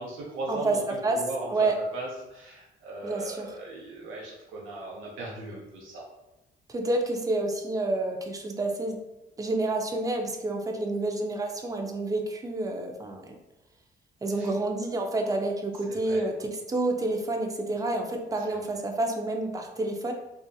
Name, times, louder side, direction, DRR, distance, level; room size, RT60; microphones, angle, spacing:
voice 1, 0.0-1.7 1.9-6.0 14.3-14.5 15.9-16.2 18.5-18.6, right 2 dB, 90° right, -3 dB, 0.6 m, -38 dB
voice 2, 3.0-3.5 6.7-9.0 9.4-13.3 14.2-20.1, right 2 dB, 15° right, 3 dB, 0.4 m, -29 dB
2.6 x 2.4 x 2.3 m, 0.95 s
cardioid pair, 90°, 20 cm